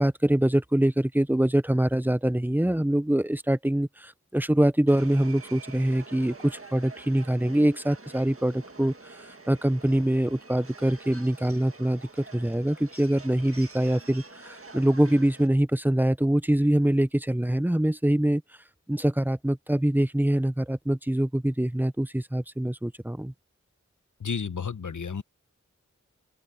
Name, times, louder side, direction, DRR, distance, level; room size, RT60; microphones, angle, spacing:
voice 1, 0.0-9.1 9.5-18.4 18.9-23.3, right 1 dB, 5° right, 0.6 m, -24 dB
Subway metro underground, 4.9-15.5, right 3 dB, 50° right, 1.8 m, -47 dB
voice 2, 24.2-25.2, left 6 dB, 90° left, 1.0 m, -31 dB
wide cardioid pair, 50°, 29 cm